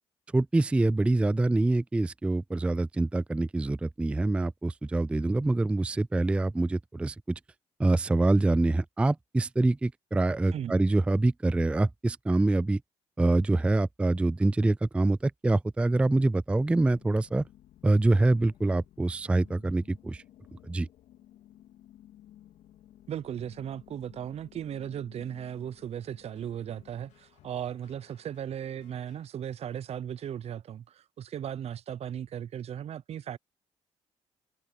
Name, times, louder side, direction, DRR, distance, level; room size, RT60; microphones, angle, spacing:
voice 1, 0.3-7.1 7.8-12.8 13.2-17.4 17.8-20.2 20.7-20.9, right 2 dB, 10° right, 0.3 m, -25 dB
voice 2, 10.5-10.8 23.1-33.4, right 9 dB, 60° right, 0.7 m, -37 dB
sound 1, 16.5-29.3, left 12 dB, 80° left, 4.0 m, -56 dB
open air
supercardioid pair, 70°, 12 cm